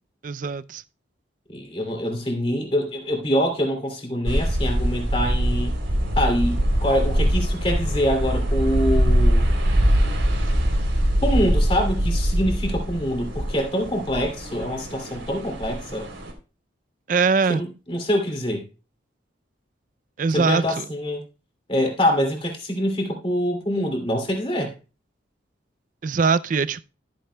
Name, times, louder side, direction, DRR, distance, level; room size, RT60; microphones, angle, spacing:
voice 1, 0.2-0.8 17.1-17.6 20.2-20.8 26.0-26.8, right 5 dB, 40° right, 0.4 m, -22 dB
voice 2, 1.5-5.7 6.2-9.5 11.2-16.1 17.5-18.6 20.3-21.2 21.7-24.7, equal, 30° left, 2.5 m, -25 dB
sound 1, 4.3-16.3, equal, 75° right, 3.3 m, -22 dB
14.0 x 9.4 x 2.2 m
head